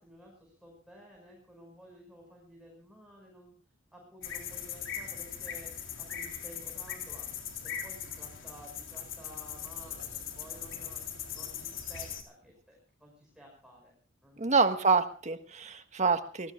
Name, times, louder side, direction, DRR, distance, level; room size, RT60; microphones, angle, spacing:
voice 1, 0.0-3.5 3.9-5.7 6.0-7.3 7.6-11.0 11.3-13.9 14.2-14.6, equal, 5° right, -2 dB, 6.0 m, -53 dB
sound 1, 4.2-12.2, left 8 dB, 80° left, 3.5 m, -40 dB
voice 2, 14.4-16.5, right 4 dB, 35° right, 9 dB, 1.4 m, -27 dB
26.5 x 19.0 x 2.4 m, 0.39 s
head